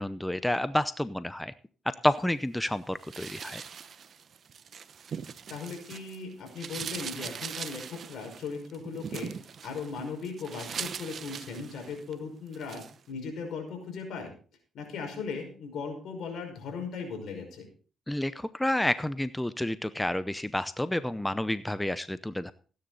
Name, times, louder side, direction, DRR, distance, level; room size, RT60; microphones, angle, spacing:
voice 1, 0.0-1.5 1.9-3.6 18.1-22.5, left 1 dB, 5° left, 14 dB, 0.6 m, -29 dB
sound 1, 3.0-6.2 6.5-12.1 12.5-12.9, right 7 dB, 55° right, 0.9 m, -41 dB
voice 2, 5.5-9.3 9.6-14.3 14.7-17.7, left 5 dB, 70° left, 3 dB, 5.5 m, -38 dB
16.5 x 9.8 x 4.0 m, 0.40 s
cardioid pair, 90°, 0 cm